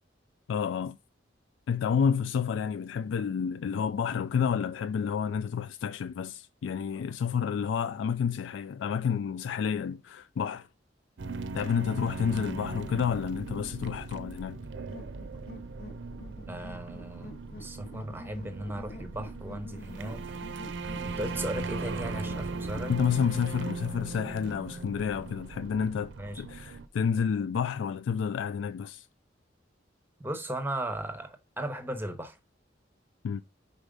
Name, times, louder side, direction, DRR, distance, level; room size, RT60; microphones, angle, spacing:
voice 1, 0.5-1.0 1.7-10.7 11.5-14.6 22.9-29.1 33.2-33.4, left 7 dB, 80° left, 0.3 m, -30 dB
sound 1, 11.2-26.9, right 3 dB, 70° right, 0.5 m, -39 dB
sound 2, 14.9-23.6, left 2 dB, 50° left, 0.9 m, -48 dB
voice 2, 16.5-20.2 21.0-22.9 26.2-26.4 30.2-32.4, right 1 dB, 10° right, 0.8 m, -37 dB
4.8 x 4.2 x 5.2 m
head